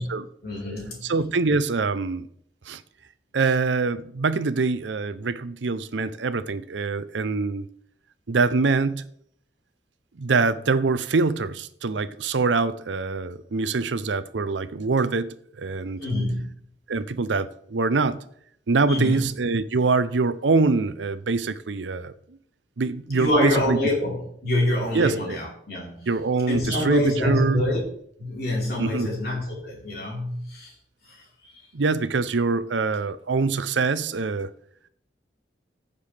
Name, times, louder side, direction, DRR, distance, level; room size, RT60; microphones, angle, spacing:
voice 1, 0.4-1.1 16.0-16.5 18.9-19.3 23.1-26.1 26.5-27.8 28.2-30.7 31.0-31.6, left 1 dB, 55° left, 4.2 m, -26 dB
voice 2, 1.0-2.3 2.7-2.8 3.3-7.6 8.3-9.1 10.2-16.0 16.9-18.2 18.7-22.1 22.8-23.8 24.9-25.4 26.1-27.6 28.8-29.1 31.7-34.5, right 4 dB, 85° right, 0.6 m, -24 dB
15.0 x 6.8 x 3.4 m
head